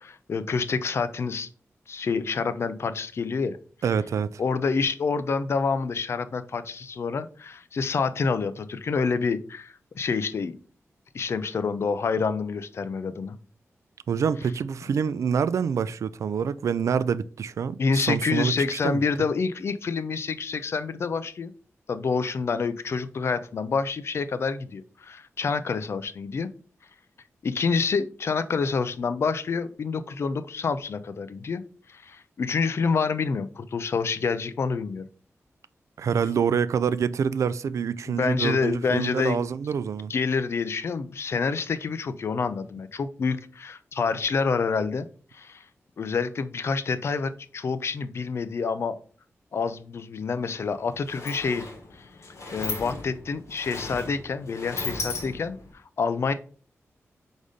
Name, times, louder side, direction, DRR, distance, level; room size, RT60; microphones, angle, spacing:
voice 1, 0.0-1.5 1.9-3.6 4.4-10.6 11.1-13.4 17.8-21.5 21.9-26.5 27.4-31.6 31.9-35.0 38.1-39.5 40.1-45.1 45.3-45.6 46.0-49.0 49.5-51.7 52.5-55.6 56.0-56.3, left 5 dB, 55° left, 0.5 m, -27 dB
voice 2, 3.8-4.4 14.1-19.0 36.0-40.1, right 7 dB, 85° right, 0.3 m, -26 dB
Sliding door, 50.4-50.5 50.8-55.7, left 3 dB, 75° left, 1.8 m, -36 dB
5.0 x 4.1 x 5.0 m
wide cardioid pair, 165°, 5 cm